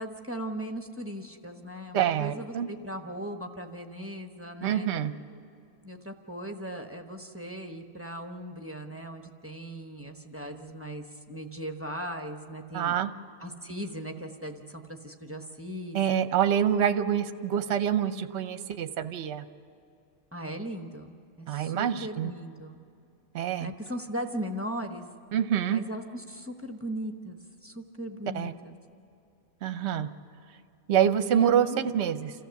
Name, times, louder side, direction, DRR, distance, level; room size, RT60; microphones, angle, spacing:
voice 1, 0.0-4.9 5.8-12.9 13.4-16.0 20.3-22.8 23.6-25.0 25.7-28.7 31.3-31.9, equal, 10° right, 4 dB, 0.8 m, -38 dB
voice 2, 1.9-2.7 4.6-5.1 12.7-13.1 15.9-19.5 21.5-22.3 23.3-23.7 25.3-25.8 28.3-28.5 29.6-30.1 30.9-31.7 31.9-32.3, right 9 dB, 55° right, 10 dB, 0.9 m, -26 dB
28.0 x 14.5 x 7.0 m, 2.5 s
omnidirectional pair, 1.5 m